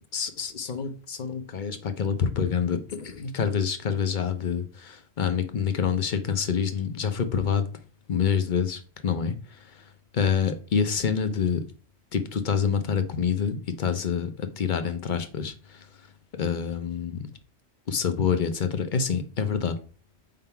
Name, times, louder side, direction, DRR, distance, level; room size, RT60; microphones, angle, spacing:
voice 1, 0.1-7.6 8.1-9.4 10.1-11.6 12.1-15.8 16.4-17.3 17.9-19.8, left 7 dB, 50° left, 0.8 m, -27 dB
4.6 x 3.8 x 5.6 m
omnidirectional pair, 1.1 m